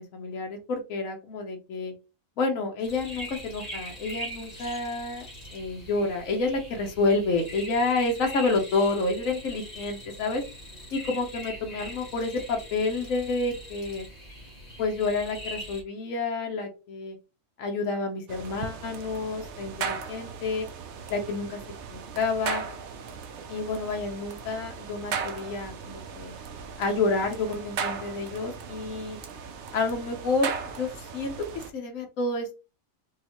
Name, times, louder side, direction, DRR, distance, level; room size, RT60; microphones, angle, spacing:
voice 1, 0.0-1.9 2.4-5.3 5.5-10.4 10.9-14.0 14.8-17.2 17.6-20.7 21.1-21.6 21.9-22.6 23.5-26.3 26.8-29.2 29.7-30.5 30.8-31.3 31.7-32.5, left 3 dB, 75° left, 3 dB, 1.3 m, -29 dB
sound 1, 2.8-15.8, equal, 30° left, 1.6 m, -42 dB
sound 2, 18.3-31.7, right 6 dB, 65° right, 0.8 m, -37 dB
5.2 x 2.3 x 3.0 m, 0.30 s
omnidirectional pair, 1.4 m